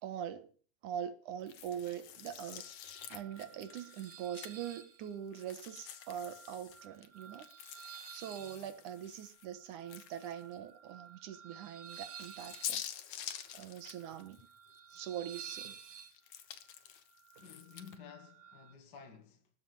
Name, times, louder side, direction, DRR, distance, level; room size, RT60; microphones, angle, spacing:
voice 1, 0.0-0.5 0.8-2.6 3.1-12.9 13.2-14.5 14.9-15.8 17.4-17.5, right 9 dB, 85° right, 2.9 m, -43 dB
sound 1, 1.5-4.8 5.3-10.5 10.9-11.0 11.9-15.0 15.4-18.0, left 10 dB, 75° left, 2.5 m, -47 dB
sound 2, 2.6-18.7, right 8 dB, 65° right, 3.0 m, -53 dB
voice 2, 17.4-19.5, left 7 dB, 40° left, 2.3 m, -53 dB
20.0 x 7.7 x 7.1 m
omnidirectional pair, 3.4 m